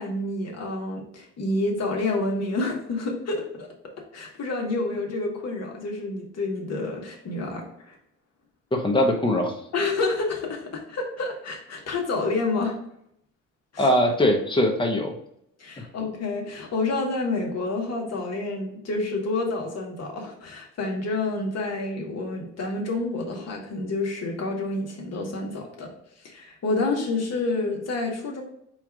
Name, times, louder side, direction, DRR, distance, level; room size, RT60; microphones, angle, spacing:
voice 1, 0.0-8.0 9.7-12.8 13.7-13.9 15.6-25.9 26.2-28.4, left 2 dB, 50° left, 0 dB, 1.3 m, -29 dB
voice 2, 8.7-9.5 13.8-15.1, left 1 dB, 15° left, 3 dB, 0.8 m, -21 dB
4.5 x 2.4 x 4.6 m, 0.73 s
cardioid pair, 110°, 32 cm